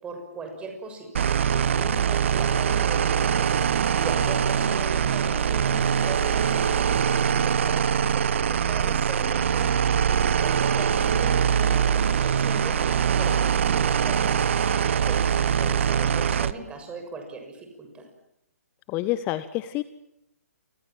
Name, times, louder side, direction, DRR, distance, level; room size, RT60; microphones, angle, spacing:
voice 1, 0.0-1.1 1.4-12.8 13.2-14.4 15.1-18.1, right 3 dB, 15° right, 4 dB, 6.7 m, -39 dB
sound 1, 1.1-16.5, right 7 dB, 50° right, 1.1 m, -23 dB
voice 2, 18.9-19.8, left 15 dB, 25° left, 14 dB, 1.0 m, -28 dB
29.0 x 25.5 x 7.6 m, 0.78 s
figure-of-eight pair, 130°, 8 cm